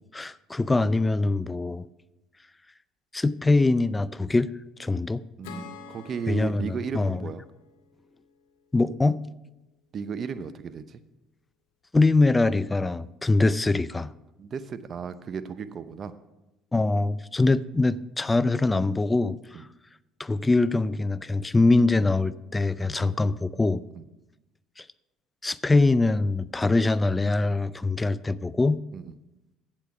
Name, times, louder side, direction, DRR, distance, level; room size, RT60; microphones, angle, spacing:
voice 1, 0.1-1.8 3.1-4.5 4.8-5.2 6.3-7.2 8.7-9.2 11.9-14.1 16.7-19.4 20.2-23.8 24.8-24.9 25.4-28.8, left 3 dB, 15° left, 17 dB, 0.4 m, -23 dB
Acoustic guitar / Strum, 5.4-8.9, left 3 dB, 85° left, 1.4 m, -46 dB
voice 2, 5.4-7.5 9.9-11.0 14.4-16.1 23.0-23.2 23.9-24.0 28.9-29.2, right 6 dB, 45° right, 13 dB, 0.7 m, -35 dB
8.6 x 8.1 x 5.8 m, 0.97 s
supercardioid pair, 80°, 0 cm